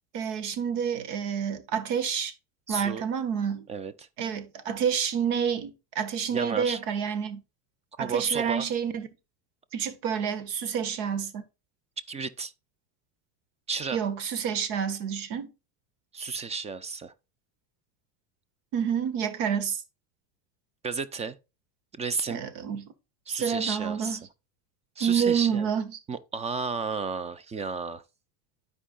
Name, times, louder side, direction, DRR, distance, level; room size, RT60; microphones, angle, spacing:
voice 1, 0.1-2.3 2.7-3.7 4.2-7.4 8.0-9.1 9.7-11.4 13.9-15.5 18.7-19.8 22.3-22.9 23.3-24.2 25.0-26.0, right 7 dB, 65° right, 1.6 m, -28 dB
voice 2, 2.7-3.0 3.7-4.1 6.3-6.8 8.0-8.7 12.1-12.5 13.7-14.0 16.1-17.1 20.8-21.4 22.0-22.4 23.3-24.2 25.0-25.7 26.1-28.0, right 5 dB, 15° right, 0.3 m, -32 dB
12.5 x 4.7 x 2.4 m
supercardioid pair, 105°, 50 cm